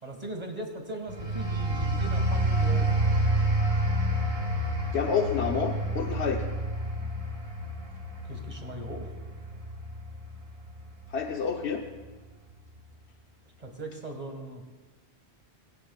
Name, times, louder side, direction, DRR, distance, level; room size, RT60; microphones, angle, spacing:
voice 1, 0.0-2.9 8.3-9.1 13.6-14.6, right 1 dB, 35° right, 4 dB, 1.9 m, -39 dB
sound 1, 1.1-11.4 11.9-12.1, right 1 dB, 85° right, 1.9 m, -29 dB
voice 2, 4.9-6.4 11.1-11.8, left 6 dB, 85° left, 2 dB, 1.2 m, -28 dB
21.0 x 16.0 x 2.4 m, 1.3 s
omnidirectional pair, 1.1 m